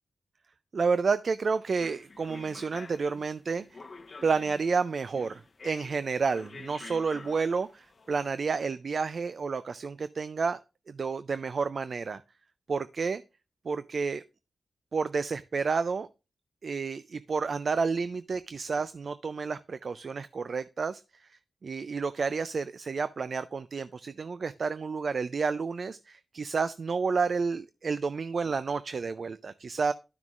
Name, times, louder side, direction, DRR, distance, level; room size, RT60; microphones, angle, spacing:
voice 1, 0.7-3.8 4.2-10.6 10.9-12.2 12.7-13.2 13.6-14.2 14.9-16.1 16.6-29.9, right 5 dB, 65° right, 13 dB, 0.3 m, -30 dB
sound 1, 1.8-8.5, left 3 dB, 50° left, 0.8 m, -48 dB
12.0 x 6.0 x 2.4 m, 0.30 s
cardioid pair, 55°, 0 cm